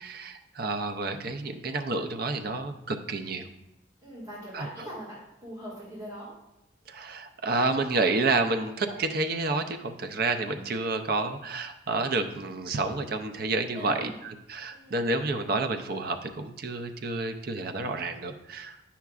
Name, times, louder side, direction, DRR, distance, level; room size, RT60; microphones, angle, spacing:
voice 1, 0.0-3.5 4.5-4.7 6.9-18.8, right 3 dB, 50° right, 6 dB, 0.5 m, -29 dB
voice 2, 4.0-5.2 5.4-6.3 11.2-11.3 13.7-14.2 14.7-15.1, equal, 15° right, -8 dB, 2.1 m, -41 dB
9.2 x 5.8 x 2.4 m, 0.86 s
head